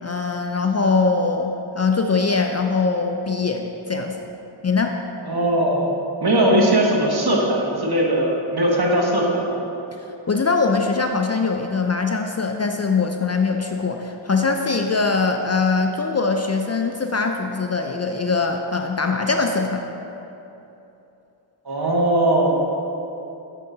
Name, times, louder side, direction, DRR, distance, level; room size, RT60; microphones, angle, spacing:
voice 1, 0.0-4.3 4.6-5.0 10.0-19.8, left 4 dB, 35° left, 4 dB, 0.4 m, -22 dB
voice 2, 5.2-5.9 6.2-9.6 21.6-22.5, right 1 dB, 50° right, -1 dB, 1.2 m, -19 dB
6.6 x 6.5 x 3.8 m, 2.9 s
wide cardioid pair, 55°, 48 cm